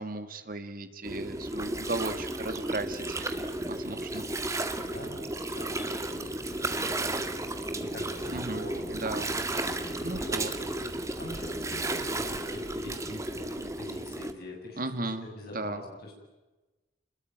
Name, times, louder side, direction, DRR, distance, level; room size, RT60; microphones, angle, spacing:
voice 1, 0.0-3.4 3.7-4.3 8.3-8.7 8.9-9.3 10.0-10.5 14.8-15.3 15.5-15.8, right 2 dB, 45° right, 9 dB, 2.0 m, -35 dB
Gurgling, 1.0-14.3, right 1 dB, 15° right, 1.8 m, -33 dB
voice 2, 4.8-5.2 5.5-7.3 7.8-9.0 9.5-10.7 11.2-16.2, left 1 dB, 50° left, 0 dB, 7.4 m, -44 dB
27.5 x 21.5 x 9.3 m, 1.1 s
head